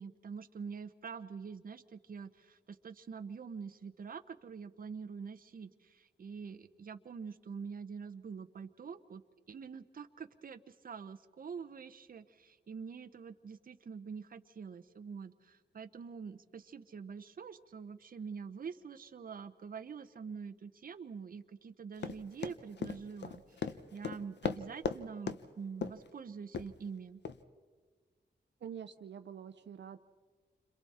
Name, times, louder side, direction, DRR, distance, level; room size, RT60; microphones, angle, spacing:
voice 1, 0.0-27.2, right 6 dB, 50° right, 9 dB, 0.9 m, -46 dB
Run, 22.0-25.0 25.3-25.4 25.8-26.1 26.5-26.7 27.3-27.4, left 6 dB, 75° left, 0.9 m, -37 dB
voice 2, 28.6-30.0, right 8 dB, 75° right, 9 dB, 0.7 m, -46 dB
30.0 x 26.5 x 4.3 m, 1.5 s
wide cardioid pair, 135°, 18 cm